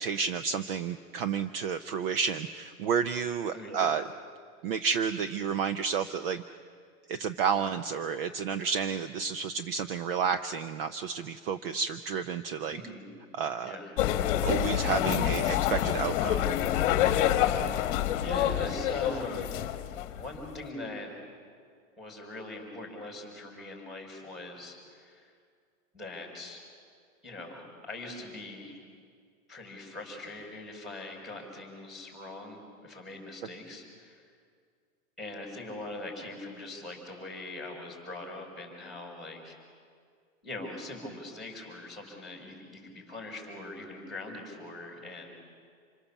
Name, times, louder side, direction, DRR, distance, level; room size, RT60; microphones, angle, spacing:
voice 1, 0.0-4.0 4.6-6.4 7.1-12.8 13.3-13.8 14.4-16.5, right 6 dB, 40° right, 11 dB, 0.7 m, -31 dB
voice 2, 3.5-3.9 12.7-13.1 13.6-13.9 18.2-19.5 20.2-21.2 22.0-25.3 25.9-26.6 27.2-28.8 29.5-34.2 35.2-39.5 40.4-45.3, left 2 dB, ahead, 1 dB, 5.0 m, -41 dB
sound 1, 14.0-20.7, left 11 dB, 35° left, 1.4 m, -27 dB
27.0 x 23.5 x 7.2 m, 2.1 s
hypercardioid pair, 155°, 43 cm